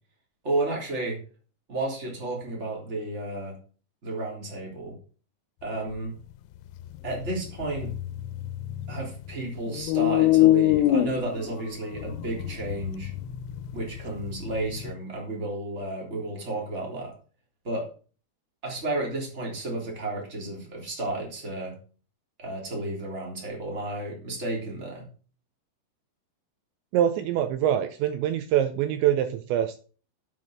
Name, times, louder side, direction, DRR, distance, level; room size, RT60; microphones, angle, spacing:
voice 1, 0.4-1.2 1.7-3.6 4.0-5.0 5.6-6.1 7.0-7.9 8.9-13.1 13.7-17.1 17.6-17.9 18.6-21.7 22.4-25.0, right 2 dB, 15° right, -1 dB, 3.0 m, -32 dB
sound 1, 6.7-9.3 9.7-14.9, left 14 dB, 90° left, 3.1 m, -25 dB
voice 2, 26.9-29.8, right 10 dB, 80° right, 9 dB, 2.9 m, -24 dB
7.7 x 7.6 x 6.4 m, 0.39 s
omnidirectional pair, 5.5 m